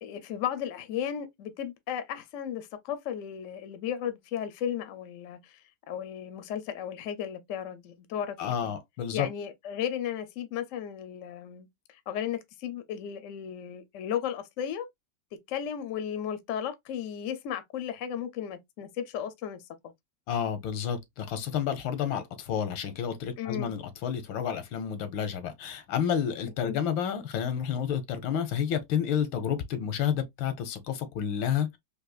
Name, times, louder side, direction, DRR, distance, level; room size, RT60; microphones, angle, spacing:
voice 1, 0.0-5.6 5.9-8.7 9.1-14.9 15.5-19.9 23.4-23.7 26.6-26.8, left 9 dB, 70° left, 0.7 m, -35 dB
voice 2, 8.4-9.3 20.3-31.8, left 8 dB, 90° left, 1.5 m, -30 dB
4.0 x 2.5 x 2.3 m
omnidirectional pair, 2.0 m